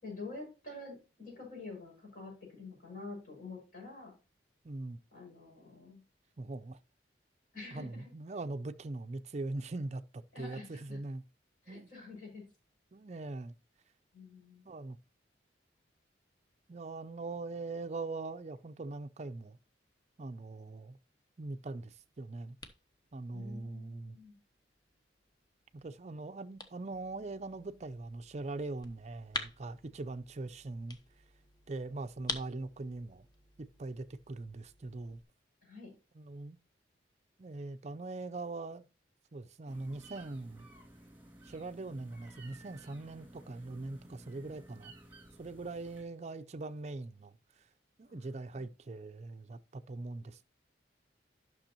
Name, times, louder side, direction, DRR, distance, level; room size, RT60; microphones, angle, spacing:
voice 1, 0.0-4.1 5.1-6.0 7.5-8.0 10.3-11.0 11.6-12.4 14.1-14.6 23.3-24.4 35.6-35.9 48.1-48.7, left 3 dB, 50° left, 5.6 m, -47 dB
voice 2, 4.6-5.0 6.4-6.8 7.7-11.2 11.7-11.9 12.9-13.6 14.7-15.0 16.7-19.6 20.2-21.0 21.4-22.6 23.1-24.2 25.7-31.0 31.7-33.3 33.8-35.2 36.1-36.6 37.4-38.8 39.3-40.7 41.4-44.9 45.4-47.7 48.0-50.4, right 2 dB, 40° right, 0.5 m, -41 dB
sound 1, 21.7-35.2, left 3 dB, 25° left, 0.8 m, -48 dB
sound 2, 39.7-46.0, right 1 dB, 10° right, 2.3 m, -55 dB
11.5 x 6.1 x 2.9 m
head